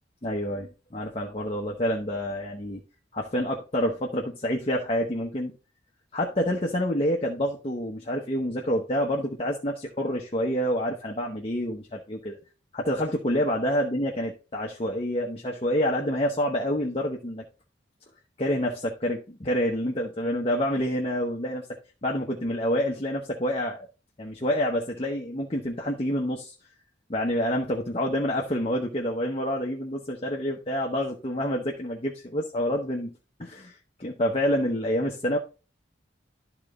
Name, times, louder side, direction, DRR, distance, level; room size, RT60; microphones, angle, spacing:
voice 1, 0.2-2.8 3.1-5.5 6.1-12.4 12.7-17.4 18.4-21.7 22.0-23.9 24.2-26.5 27.1-33.1 33.4-35.4, equal, 30° left, 0 dB, 0.9 m, -28 dB
12.0 x 4.0 x 3.7 m, 0.32 s
head